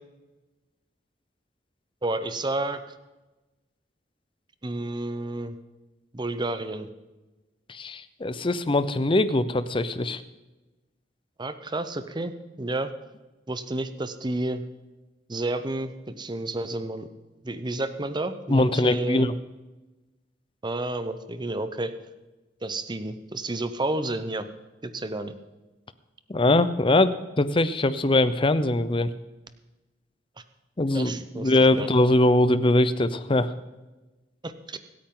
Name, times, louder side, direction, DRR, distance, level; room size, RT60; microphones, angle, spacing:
voice 1, 2.0-2.8 4.6-5.6 6.1-6.9 11.4-12.3 12.6-12.9 13.5-14.6 15.3-17.1 17.4-19.3 20.6-21.9 22.6-24.5 24.8-25.3 30.9-31.9 34.4-34.8, right 2 dB, 25° right, 10 dB, 0.8 m, -30 dB
voice 2, 7.7-10.2 18.5-19.3 26.3-29.1 30.8-33.5, left 2 dB, 30° left, 13 dB, 0.7 m, -22 dB
26.0 x 8.8 x 3.9 m, 1.1 s
head